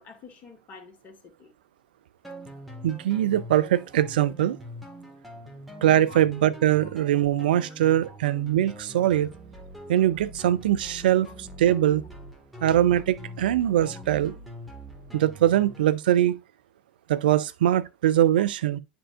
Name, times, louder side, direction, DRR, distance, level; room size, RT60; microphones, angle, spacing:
voice 1, 0.0-1.5 6.1-6.2 6.8-6.9 8.0-8.2 11.3-11.4 13.9-14.0 18.4-18.5, left 5 dB, 35° left, 1.9 m, -48 dB
sound 1, 2.2-16.0, right 1 dB, ahead, 1.8 m, -43 dB
voice 2, 2.8-4.6 5.8-9.3 9.9-11.3 11.6-12.0 12.6-14.4 15.1-16.4 17.1-18.8, right 12 dB, 70° right, 0.5 m, -22 dB
9.9 x 4.4 x 2.5 m
hypercardioid pair, 95°, 5 cm